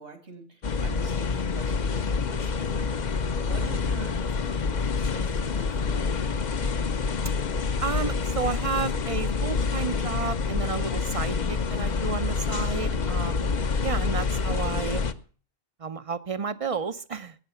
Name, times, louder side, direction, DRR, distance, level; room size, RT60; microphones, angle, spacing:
voice 1, 0.0-2.9 3.3-6.5, right 3 dB, 80° right, 8 dB, 2.7 m, -44 dB
sound 1, 0.6-15.1, left 5 dB, 45° left, 0.8 m, -27 dB
voice 2, 7.8-13.5 13.8-15.0 15.8-17.4, right 5 dB, 40° right, 13 dB, 0.6 m, -32 dB
18.0 x 6.5 x 6.9 m, 0.42 s
omnidirectional pair, 1.1 m